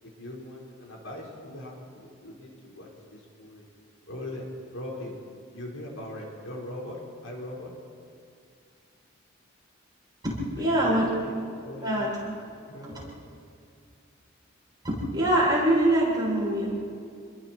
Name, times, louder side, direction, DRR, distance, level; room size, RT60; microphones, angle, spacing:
voice 1, 0.0-3.6 4.1-4.5 4.7-5.2 5.5-7.7 10.5-11.4 11.6-13.2, left 1 dB, 75° left, -2 dB, 4.9 m, -40 dB
voice 2, 10.2-11.1 11.8-12.1 12.8-12.9 14.8-16.7, right 1 dB, 20° right, -6 dB, 7.8 m, -24 dB
29.0 x 22.0 x 4.6 m, 2.4 s
head